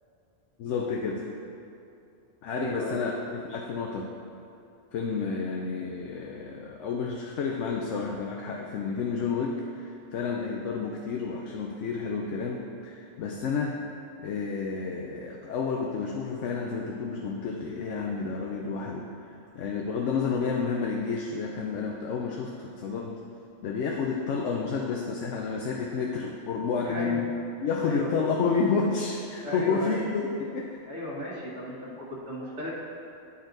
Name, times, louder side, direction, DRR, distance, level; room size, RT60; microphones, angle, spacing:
voice 1, 0.6-1.3 2.4-4.1 4.9-13.8 14.2-23.2 23.6-27.4 27.6-30.8 31.8-32.0, left 5 dB, 85° left, 0 dB, 0.9 m, -30 dB
voice 2, 2.5-3.1 26.8-27.2 27.8-28.1 29.4-30.0 30.9-32.7, left 1 dB, 80° right, -9 dB, 1.6 m, -35 dB
10.5 x 4.1 x 3.9 m, 2.7 s
omnidirectional pair, 1.2 m